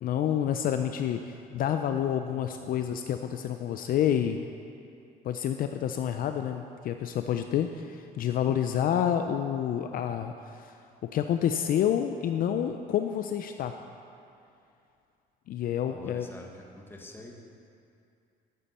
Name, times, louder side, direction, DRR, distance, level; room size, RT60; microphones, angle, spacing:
voice 1, 0.0-4.4 5.2-10.8 11.1-13.7 15.5-16.3, left 9 dB, 60° left, 7 dB, 0.5 m, -28 dB
voice 2, 15.9-16.5 16.8-17.3, left 2 dB, 15° left, 1 dB, 1.5 m, -45 dB
13.5 x 8.7 x 4.3 m, 2.5 s
cardioid pair, 110°, 17 cm